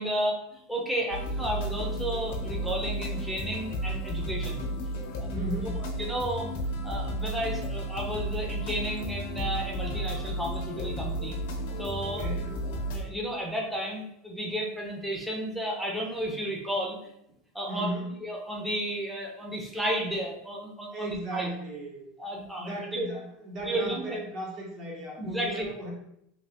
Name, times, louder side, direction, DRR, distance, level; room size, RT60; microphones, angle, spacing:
voice 1, 0.0-4.6 5.2-5.3 6.0-6.5 6.8-11.4 11.8-12.2 12.9-17.0 17.5-17.9 18.2-21.5 22.2-23.1 23.7-24.2 25.2-25.7, right 1 dB, 5° right, -1 dB, 0.7 m, -32 dB
sound 1, 1.1-13.0, right 1 dB, 75° left, 0.8 m, -33 dB
voice 2, 5.3-5.9 12.0-12.5 17.7-18.2 20.9-22.1 22.6-25.9, right 1 dB, 45° right, -2 dB, 1.2 m, -36 dB
3.3 x 2.9 x 2.8 m, 0.77 s
supercardioid pair, 125°, 0 cm